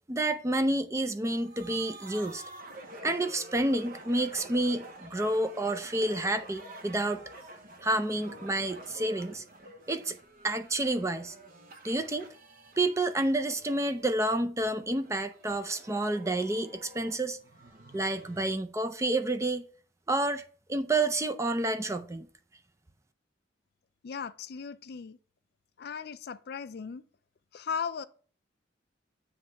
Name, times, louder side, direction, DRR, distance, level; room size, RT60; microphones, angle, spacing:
voice 1, 0.1-2.4 3.0-7.2 7.8-9.4 9.9-10.2 10.4-11.3 11.8-12.3 12.8-17.4 17.9-19.6 20.1-20.4 20.7-22.3, right 2 dB, 15° right, 0.5 m, -29 dB
sound 1, 1.3-14.3 14.9-18.5, right 1 dB, 50° right, 0.9 m, -49 dB
voice 2, 24.0-25.2 25.8-27.0 27.5-28.0, left 6 dB, 55° left, 0.4 m, -37 dB
7.8 x 3.2 x 6.4 m
head